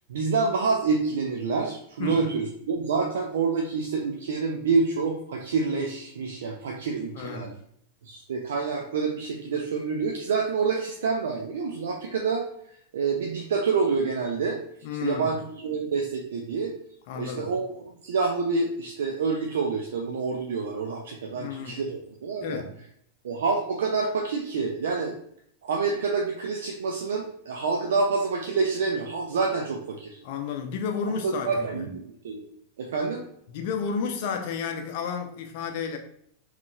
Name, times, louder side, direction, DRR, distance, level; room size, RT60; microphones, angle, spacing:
voice 1, 0.1-7.5 8.0-12.4 12.9-14.6 15.0-16.7 17.2-17.7 18.0-22.6 23.2-25.1 25.6-30.2 31.2-32.4 32.8-33.2, right 4 dB, 60° right, 0.4 m, -27 dB
voice 2, 7.1-7.6 14.8-15.3 17.1-17.5 21.3-21.8 22.4-22.7 30.2-32.0 33.5-36.0, left 6 dB, 50° left, 0.5 m, -32 dB
3.6 x 3.1 x 2.4 m
figure-of-eight pair, 90°, 0 cm